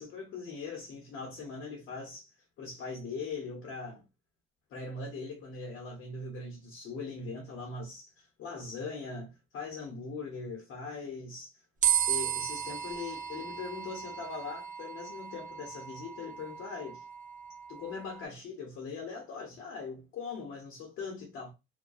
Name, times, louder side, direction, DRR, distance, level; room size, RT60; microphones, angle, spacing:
voice 1, 0.0-2.3 2.6-4.0 4.7-11.5 12.1-17.0 17.7-21.5, left 4 dB, 85° left, 0.8 m, -41 dB
sound 1, 11.8-18.2, right 10 dB, 40° right, 0.5 m, -34 dB
2.5 x 2.2 x 2.2 m
cardioid pair, 90°, 20 cm